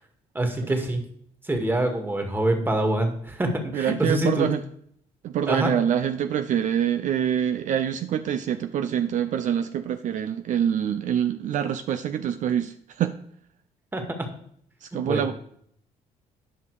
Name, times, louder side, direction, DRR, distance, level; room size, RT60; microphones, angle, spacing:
voice 1, 0.3-1.0 1.4-4.5 5.5-5.7 13.9-14.3 15.1-15.3, right 1 dB, 15° right, 4 dB, 1.9 m, -25 dB
voice 2, 3.7-4.6 5.2-13.1 14.8-15.3, right 9 dB, 65° right, 9 dB, 0.6 m, -25 dB
10.0 x 5.5 x 4.8 m, 0.65 s
cardioid pair, 90°, 14 cm